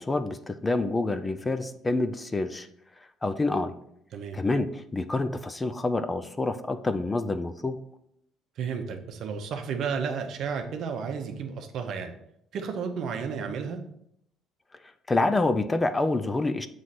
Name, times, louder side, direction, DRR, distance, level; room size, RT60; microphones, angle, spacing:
voice 1, 0.0-2.7 3.2-3.7 4.3-7.8 15.1-16.7, left 2 dB, 15° left, 10 dB, 0.4 m, -27 dB
voice 2, 8.6-12.1 12.5-13.8, right 6 dB, 60° right, 5 dB, 0.8 m, -32 dB
7.5 x 3.2 x 4.1 m, 0.74 s
cardioid pair, 125°, 0 cm